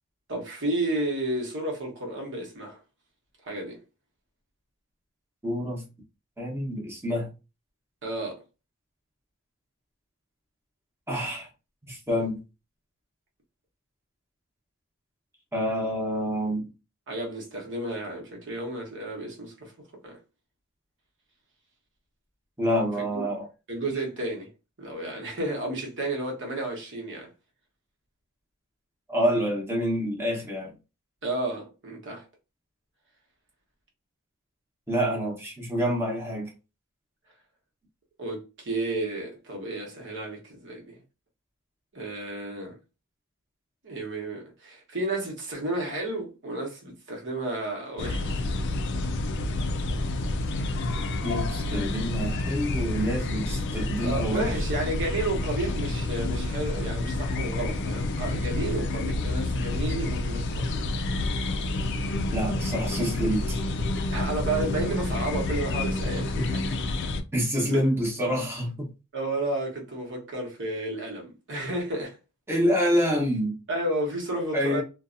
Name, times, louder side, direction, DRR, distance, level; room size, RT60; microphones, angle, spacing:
voice 1, 0.3-2.8 3.5-3.8 8.0-8.4 17.1-19.7 20.0-20.2 23.0-23.2 23.7-24.5 24.8-27.3 31.2-32.2 38.2-41.0 41.9-42.8 43.8-48.5 54.0-60.8 64.1-66.6 67.7-67.8 69.1-72.2 73.7-74.8, right 2 dB, 60° right, 1.1 m, -32 dB
voice 2, 5.4-5.8 6.4-7.3 11.1-11.5 11.9-12.4 15.5-16.7 22.6-23.5 29.1-30.7 34.9-36.5 51.2-54.5 62.3-63.6 66.4-66.5 67.3-68.9 72.5-73.6 74.5-74.8, equal, 10° right, 0.9 m, -27 dB
sound 1, 48.0-67.2, left 2 dB, 55° left, 0.4 m, -29 dB
2.6 x 2.2 x 2.5 m
head